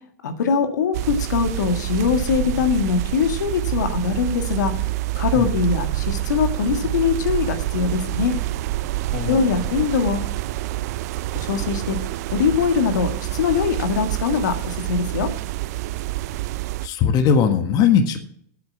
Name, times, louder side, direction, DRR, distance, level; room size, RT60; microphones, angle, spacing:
voice 1, 0.2-4.7 5.2-8.3 9.2-10.3 11.4-12.0 12.3-15.3, left 6 dB, 80° left, 7 dB, 1.7 m, -22 dB
sound 1, 0.9-16.9, right 17 dB, 65° right, 0.6 m, -27 dB
voice 2, 9.1-9.7 16.8-18.2, left 7 dB, 45° left, 8 dB, 1.4 m, -19 dB
8.9 x 8.0 x 7.4 m, 0.64 s
hypercardioid pair, 105°, 9 cm